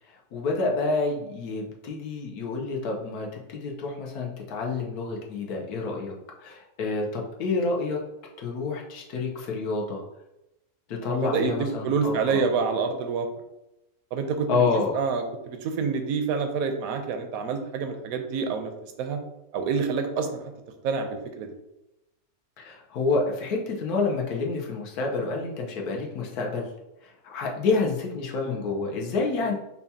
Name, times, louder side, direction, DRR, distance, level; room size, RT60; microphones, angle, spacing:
voice 1, 0.3-3.3 3.5-6.1 6.4-8.0 8.4-10.0 10.9-12.4 14.5-15.0 22.6-26.7 27.0-29.5, left 3 dB, 85° left, 0 dB, 1.3 m, -28 dB
voice 2, 11.0-13.3 14.1-14.5 14.9-18.7 19.0-19.2 19.5-20.4 20.8-21.5, right 5 dB, 75° right, 6 dB, 1.0 m, -27 dB
5.7 x 2.2 x 2.7 m, 0.91 s
omnidirectional pair, 1.6 m